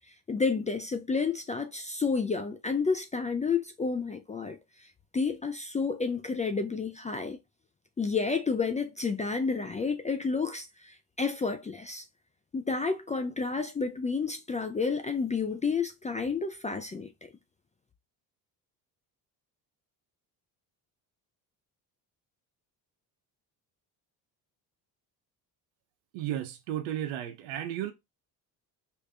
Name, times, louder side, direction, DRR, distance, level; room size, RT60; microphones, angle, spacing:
voice 1, 0.3-4.6 5.1-7.4 8.0-12.0 12.5-17.1, left 4 dB, 20° left, 0.3 m, -30 dB
voice 2, 26.1-27.9, right 11 dB, 90° right, 0.7 m, -34 dB
3.4 x 2.6 x 3.2 m
supercardioid pair, 80°, 44 cm